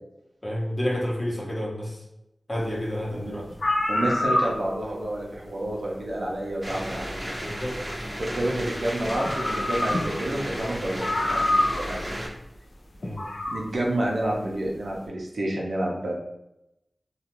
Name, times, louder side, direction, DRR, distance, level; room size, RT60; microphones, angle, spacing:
voice 1, 0.4-2.0 2.5-3.5 7.4-7.8 13.0-13.4, equal, 25° left, -3 dB, 0.8 m, -30 dB
voice 2, 3.1-3.4 3.9-7.3 8.2-12.2 13.5-16.1, right 1 dB, 75° right, -2 dB, 0.6 m, -29 dB
sound 1, 3.2-3.3 3.5-4.9 6.3-6.4 8.6-8.7 9.1-10.3 10.6-10.7 11.0-12.0 13.0-13.6, left 1 dB, 65° left, 0.4 m, -26 dB
sound 2, 6.6-12.3, equal, 10° right, 0.6 m, -34 dB
2.4 x 2.3 x 2.9 m, 0.85 s
wide cardioid pair, 55°, 0 cm